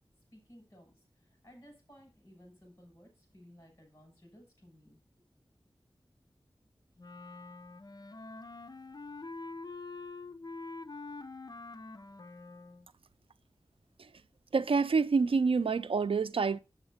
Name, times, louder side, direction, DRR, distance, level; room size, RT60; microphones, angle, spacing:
voice 1, 0.3-5.0, equal, 30° left, 6.4 m, -57 dB
Wind instrument woodwind instrument, 7.0-12.9, left 3 dB, 45° left, 0.6 m, -45 dB
voice 2, 14.5-16.6, right 4 dB, 85° right, 0.5 m, -27 dB
8.0 x 7.9 x 4.9 m
wide cardioid pair, 70°, 9 cm